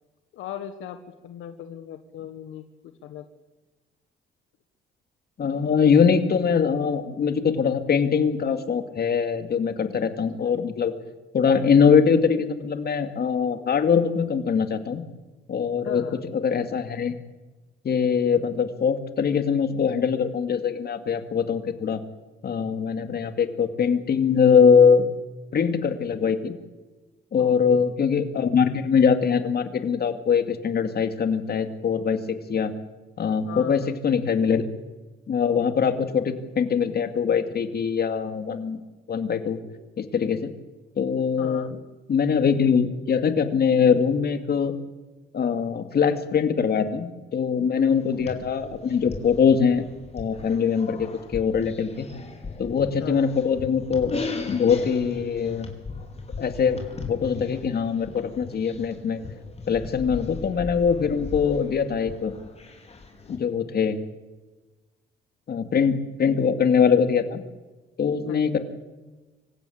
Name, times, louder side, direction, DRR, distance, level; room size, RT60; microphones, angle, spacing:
voice 1, 0.3-3.2 10.4-10.5 15.8-16.2 27.4-27.9 33.5-33.9 41.4-41.7 53.0-53.3 68.3-68.4, left 10 dB, 90° left, 8 dB, 1.5 m, -38 dB
voice 2, 5.4-10.9 11.3-15.0 15.5-16.0 16.3-17.2 17.8-22.0 22.4-25.1 25.5-26.5 27.3-32.7 33.2-34.6 35.3-38.8 39.1-39.6 40.0-40.5 41.0-41.7 42.1-44.7 45.3-49.8 50.1-52.1 52.6-54.1 54.5-55.7 56.4-56.8 57.1-59.2 59.7-62.3 63.3-64.0 65.5-67.4 68.0-68.6, left 6 dB, 50° left, 8 dB, 2.5 m, -22 dB
sound 1, 48.0-63.4, left 3 dB, 30° left, 4.4 m, -38 dB
25.5 x 16.0 x 8.7 m, 1.2 s
cardioid pair, 90°, 20 cm